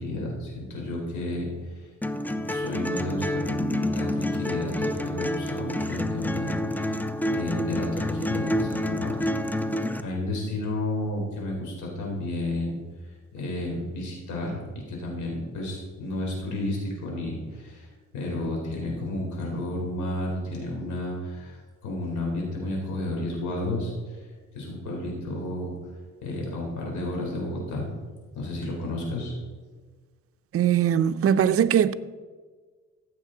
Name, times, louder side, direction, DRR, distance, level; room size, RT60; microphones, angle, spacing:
voice 1, 0.0-1.5 1.8-1.9 2.3-9.6 10.0-12.8 13.3-17.9 18.1-24.2 24.5-25.7 26.2-27.9 28.3-29.3, left 1 dB, 75° left, 3.8 m, -32 dB
sound 1, 2.0-10.0, left 1 dB, 5° left, 0.5 m, -28 dB
voice 2, 30.5-31.9, right 9 dB, 50° right, 0.5 m, -21 dB
14.5 x 7.4 x 3.9 m
cardioid pair, 90°, 30 cm